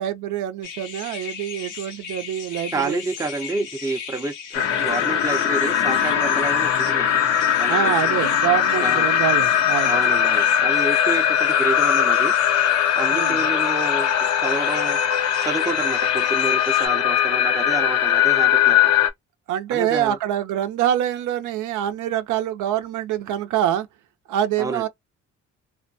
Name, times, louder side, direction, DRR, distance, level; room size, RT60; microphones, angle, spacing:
voice 1, 0.0-3.0 7.7-10.0 13.1-13.4 19.5-23.9 24.3-24.9, right 11 dB, 85° right, 0.5 m, -25 dB
sound 1, 0.6-16.9, left 7 dB, 85° left, 0.8 m, -36 dB
voice 2, 2.7-7.2 7.6-7.9 8.8-9.1 9.8-12.3 13.0-15.0 15.4-18.8 19.7-20.2 24.6-24.8, right 3 dB, 10° right, 0.4 m, -29 dB
sound 2, 4.5-19.1, left 9 dB, 55° left, 0.5 m, -20 dB
2.4 x 2.2 x 2.5 m
cardioid pair, 90°, 30 cm